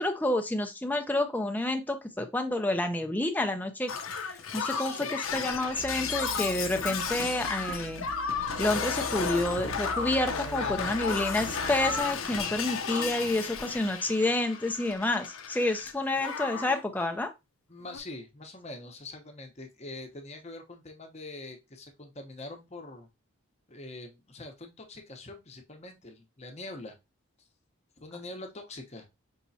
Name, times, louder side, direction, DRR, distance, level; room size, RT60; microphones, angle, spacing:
voice 1, 0.0-3.9 4.2-8.1 8.6-17.3, left 2 dB, 10° left, 5 dB, 0.5 m, -29 dB
Shatter, 3.9-15.9 16.2-16.8 17.8-18.0, left 5 dB, 70° left, 0.6 m, -33 dB
voice 2, 4.7-5.2 10.3-11.0 17.7-23.1 23.7-27.0 28.0-29.1, left 2 dB, 30° left, 4 dB, 0.9 m, -44 dB
sound 1, 5.8-12.0, right 6 dB, 50° right, 0.4 m, -44 dB
5.5 x 3.0 x 2.7 m, 0.23 s
head